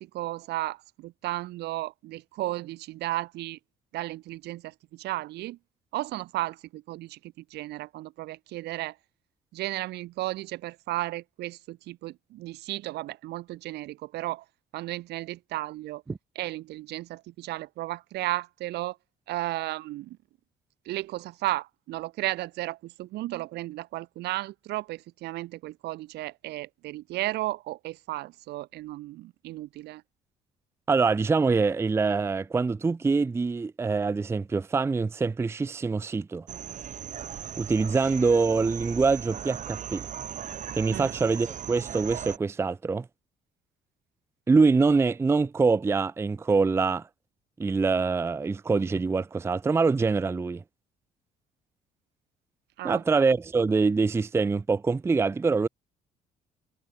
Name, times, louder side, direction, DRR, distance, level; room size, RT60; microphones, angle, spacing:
voice 1, 0.0-3.6 3.9-5.6 5.9-8.9 9.5-14.4 14.7-16.0 16.3-19.0 19.3-20.2 20.8-30.0 40.9-41.1 52.8-53.0, right 17 dB, 80° right, 1.6 m, -34 dB
voice 2, 30.9-36.5 37.6-40.1 40.7-43.1 44.5-47.0 47.6-50.6 52.8-55.7, right 4 dB, 15° right, 0.5 m, -24 dB
sound 1, 36.5-42.4, right 9 dB, 50° right, 3.2 m, -38 dB
cardioid pair, 110°, 17 cm